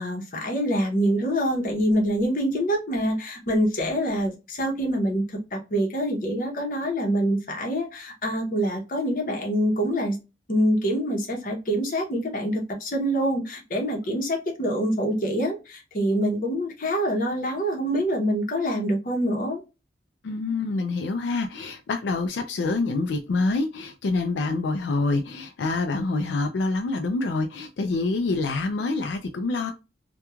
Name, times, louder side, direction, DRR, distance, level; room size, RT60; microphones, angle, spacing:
voice 1, 0.0-10.2 10.5-19.6, equal, 50° left, 0.8 m, -25 dB
voice 2, 20.2-29.7, left 3 dB, 85° left, 0.4 m, -26 dB
3.0 x 2.2 x 2.2 m
head